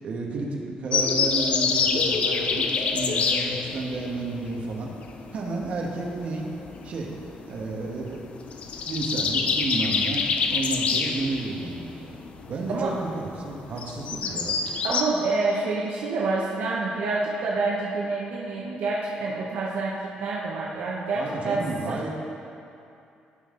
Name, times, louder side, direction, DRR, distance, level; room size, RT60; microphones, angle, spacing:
voice 1, 0.0-4.9 5.3-6.5 6.8-7.1 7.4-8.2 8.9-10.2 10.5-12.1 12.5-14.6 21.1-22.1, right 3 dB, 50° right, -1 dB, 1.5 m, -31 dB
sound 1, 0.9-15.0, left 5 dB, 45° left, 0.6 m, -27 dB
voice 2, 12.7-13.0 14.6-22.1, right 3 dB, 70° right, -4 dB, 1.0 m, -28 dB
16.5 x 5.6 x 3.9 m, 2.7 s
cardioid pair, 150°, 3 cm